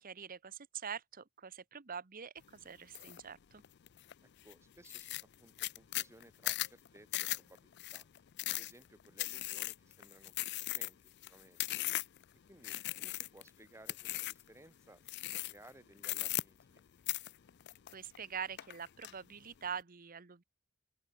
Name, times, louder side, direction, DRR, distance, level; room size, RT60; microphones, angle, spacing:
voice 1, 0.0-3.6 17.9-20.4, right 7 dB, 40° right, 0.9 m, -44 dB
sound 1, 2.9-3.2 3.6-4.1 4.5-4.6 4.8-12.2 12.6-13.5 13.9-14.5 15.1-15.7 16.0-16.8 17.1-18.2 18.6-19.1, left 17 dB, 55° left, 0.4 m, -38 dB
voice 2, 4.4-8.1 8.5-11.8 12.5-16.8, right 1 dB, 15° right, 2.0 m, -60 dB
open air
head